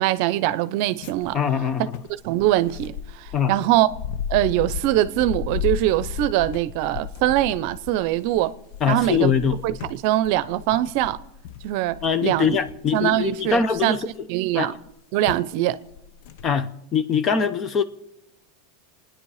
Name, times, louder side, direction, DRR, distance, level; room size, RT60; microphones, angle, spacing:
voice 1, 0.0-1.4 2.2-3.9 4.3-8.5 8.9-9.3 9.6-11.2 11.6-12.6 12.9-14.0 14.3-14.8 15.1-15.8, right 14 dB, 55° right, 0.7 m, -22 dB
sound 1, 1.0-14.2 14.9-15.0 15.3-15.5 15.9-16.5, left 8 dB, 60° left, 0.8 m, -35 dB
voice 2, 1.3-1.9 3.3-3.5 8.8-9.6 12.0-14.0 14.5-14.7 16.4-17.8, left 6 dB, 30° left, 0.9 m, -22 dB
28.0 x 10.0 x 4.9 m
supercardioid pair, 145°, 0 cm